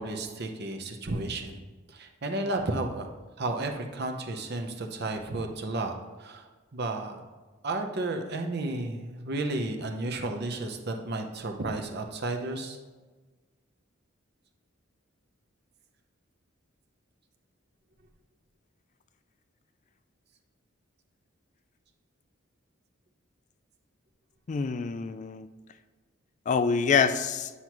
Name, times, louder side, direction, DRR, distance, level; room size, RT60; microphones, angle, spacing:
voice 1, 0.0-1.6 1.9-3.1 3.4-5.9 6.2-6.4 6.7-7.2 7.6-12.8, right 2 dB, 55° right, 4 dB, 0.8 m, -32 dB
voice 2, 24.5-25.5 26.5-27.5, left 5 dB, 35° left, 11 dB, 0.3 m, -26 dB
9.6 x 5.8 x 3.0 m, 1.3 s
head